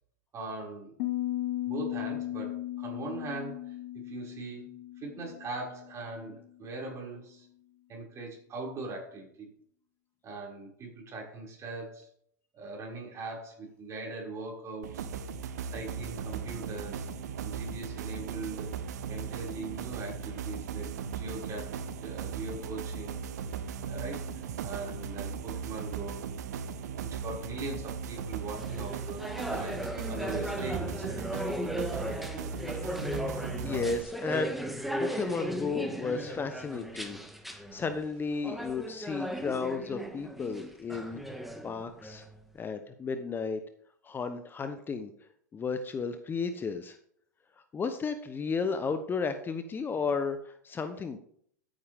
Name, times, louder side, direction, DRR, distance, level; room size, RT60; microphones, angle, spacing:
voice 1, 0.3-0.9 1.7-4.7 5.0-7.5 7.9-9.5 10.2-12.1 12.5-15.1 15.6-17.1 17.4-18.7 19.1-23.2 23.8-24.3 24.6-26.2 26.8-29.8 30.1-31.3 35.0-35.1, right 3 dB, 30° right, -2 dB, 6.0 m, -40 dB
Piano, 1.0-6.6, left 14 dB, 55° left, 2.1 m, -37 dB
sound 1, 14.8-34.0, right 6 dB, 70° right, 1.1 m, -37 dB
sound 2, 28.6-42.4, equal, ahead, 1.8 m, -37 dB
voice 2, 33.6-34.5 35.0-37.2 37.7-41.2 41.6-42.2 42.6-43.6 44.0-45.1 45.5-47.0 47.7-51.2, left 5 dB, 20° left, 9 dB, 1.0 m, -33 dB
14.5 x 9.0 x 3.6 m, 0.63 s
hypercardioid pair, 95°, 9 cm